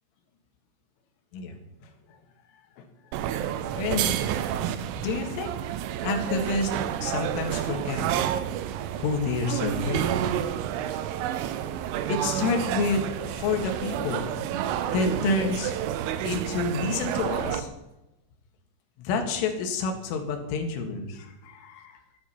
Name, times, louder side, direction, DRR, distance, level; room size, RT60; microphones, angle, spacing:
voice 1, 1.3-2.2 2.8-2.9 3.8-4.2 4.6-4.7 5.0-5.5 6.0-6.7 7.0-8.1 9.0-10.1 12.1-14.3 14.9-15.7 16.2-17.7 19.0-21.9, left 4 dB, 75° left, 3 dB, 4.3 m, -29 dB
sound 1, 3.1-17.6, right 10 dB, 85° right, 3.3 m, -30 dB
14.0 x 12.0 x 5.9 m, 0.95 s
omnidirectional pair, 5.9 m